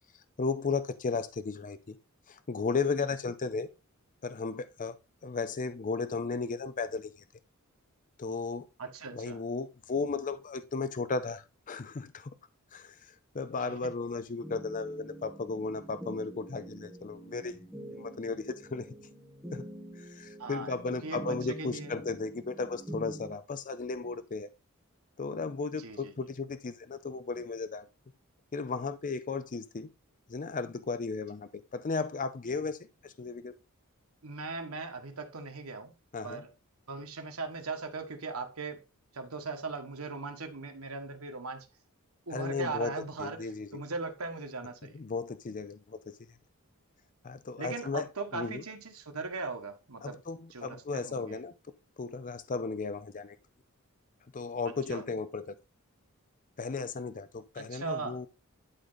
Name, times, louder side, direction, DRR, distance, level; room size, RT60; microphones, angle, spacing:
voice 1, 0.4-2.0 2.3-3.7 4.2-5.0 5.2-7.2 8.2-8.7 9.1-12.3 12.7-17.5 17.9-18.9 19.5-19.7 20.0-24.5 25.2-27.9 28.5-29.9 30.3-33.6 36.1-36.4 42.3-42.9 43.2-43.8 44.9-46.1 47.2-48.1 48.3-48.6 50.0-51.5 52.0-53.4 54.3-55.5 56.6-58.3, left 4 dB, 40° left, 0.5 m, -35 dB
voice 2, 8.8-9.4 13.6-13.9 20.4-21.9 25.8-26.2 34.2-35.9 36.2-36.5 36.9-38.8 39.1-41.7 42.3-45.0 47.6-50.2 50.5-51.4 54.6-55.0 57.6-58.2, right 4 dB, 90° right, 1.6 m, -39 dB
sound 1, 14.4-23.4, right 1 dB, 5° right, 1.7 m, -46 dB
11.0 x 3.9 x 4.0 m
head